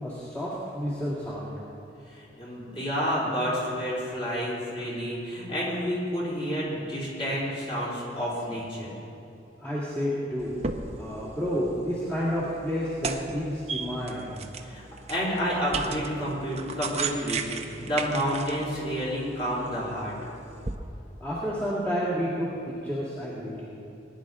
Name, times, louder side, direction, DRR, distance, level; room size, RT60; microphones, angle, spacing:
voice 1, 0.0-1.6 9.6-10.6 11.0-14.3 21.2-22.5 22.8-23.7, equal, 10° left, -9 dB, 2.0 m, -30 dB
voice 2, 2.1-8.9 14.6-14.8 15.1-20.1, equal, 30° left, -7 dB, 3.7 m, -30 dB
sound 1, 10.4-20.8, right 4 dB, 35° right, 0.6 m, -37 dB
20.0 x 10.5 x 3.7 m, 2.8 s
head